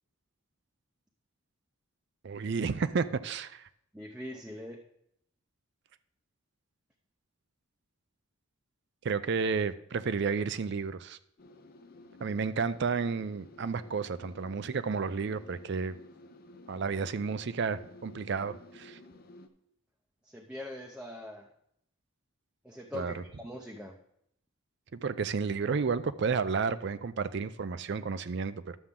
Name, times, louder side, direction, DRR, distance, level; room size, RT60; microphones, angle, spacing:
voice 1, 2.2-3.7 9.0-11.2 12.2-15.9 16.7-19.0 22.9-23.2 24.9-28.8, right 5 dB, 55° right, 13 dB, 0.4 m, -31 dB
voice 2, 3.9-4.8 20.2-21.5 22.6-24.0, left 1 dB, 5° right, -1 dB, 0.6 m, -42 dB
sound 1, 11.4-19.5, left 1 dB, 45° left, 0.7 m, -53 dB
11.5 x 7.1 x 3.7 m, 0.75 s
head